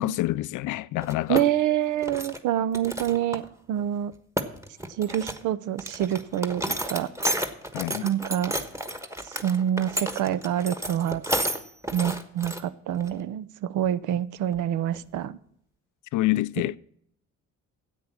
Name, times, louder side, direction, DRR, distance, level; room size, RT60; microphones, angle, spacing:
voice 1, 0.0-1.4 7.7-8.1 16.1-16.8, left 17 dB, 80° left, 0.5 m, -27 dB
sound 1, 1.0-1.4 1.8-2.4 2.7-3.5 3.8-3.9 4.1-5.4 5.8-12.6 13.0-13.1 14.5-14.6 14.9-15.2, right 1 dB, 10° right, 1.2 m, -31 dB
voice 2, 1.3-3.4 3.7-4.1 5.0-7.1 8.0-8.5 9.3-11.2 11.9-15.4, right 11 dB, 80° right, 0.7 m, -26 dB
10.5 x 8.1 x 7.2 m
cardioid pair, 90°, 30 cm